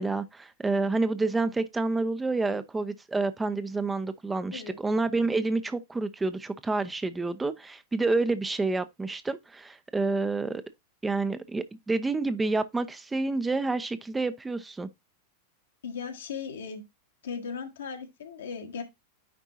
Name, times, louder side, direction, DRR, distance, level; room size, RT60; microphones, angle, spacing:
voice 1, 0.0-10.6 11.0-14.9, right 3 dB, 10° right, 0.6 m, -28 dB
voice 2, 15.8-16.8 17.2-18.8, left 6 dB, 65° left, 1.5 m, -37 dB
9.5 x 4.5 x 2.7 m
figure-of-eight pair, 90°, 0 cm